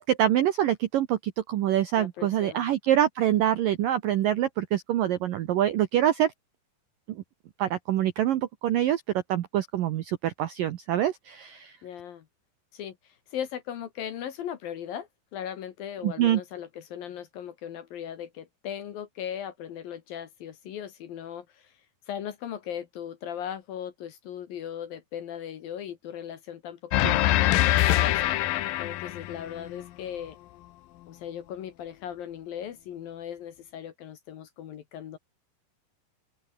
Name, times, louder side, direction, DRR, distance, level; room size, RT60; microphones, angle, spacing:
voice 1, 0.0-6.3 7.6-9.0 9.3-11.7 16.0-16.4 27.0-27.1, right 11 dB, 75° right, 2.1 m, -25 dB
voice 2, 2.0-2.7 11.8-12.3 12.7-21.8 22.1-28.3 28.8-30.4 31.1-35.2, left 9 dB, 60° left, 2.8 m, -38 dB
sound 1, 26.9-29.8, left 15 dB, 75° left, 2.1 m, -24 dB
omnidirectional pair, 5.4 m